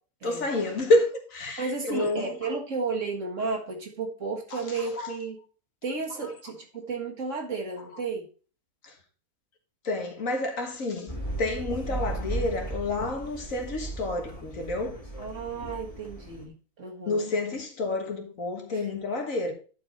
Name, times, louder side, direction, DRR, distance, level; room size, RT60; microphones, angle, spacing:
voice 1, 0.2-2.4 4.5-5.2 6.2-6.3 8.8-9.0 9.8-15.0 17.1-19.5, left 2 dB, 65° left, 1.9 m, -29 dB
voice 2, 1.6-5.4 5.8-8.3 15.2-17.3 18.7-18.8, right 4 dB, 55° right, 2.0 m, -33 dB
sound 1, 11.1-16.4, right 2 dB, 25° left, 2.4 m, -36 dB
10.5 x 4.8 x 4.2 m
omnidirectional pair, 1.5 m